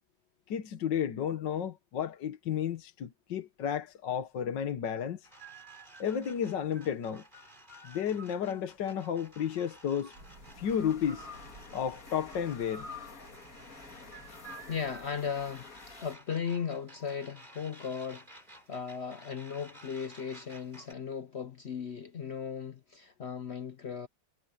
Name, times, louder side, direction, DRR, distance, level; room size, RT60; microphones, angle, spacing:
voice 1, 0.5-5.3 6.0-7.2 7.8-10.1 10.6-11.3 11.7-12.9, left 8 dB, 60° left, 1.7 m, -32 dB
sound 1, 5.2-6.7 8.6-16.1, left 4 dB, 40° left, 2.5 m, -50 dB
sound 2, 5.2-20.9, right 2 dB, 20° right, 4.4 m, -54 dB
sound 3, 10.2-15.2, right 2 dB, 70° right, 8.1 m, -56 dB
voice 2, 14.7-15.7 16.0-18.4 18.7-24.1, left 7 dB, 80° left, 0.6 m, -37 dB
omnidirectional pair, 2.2 m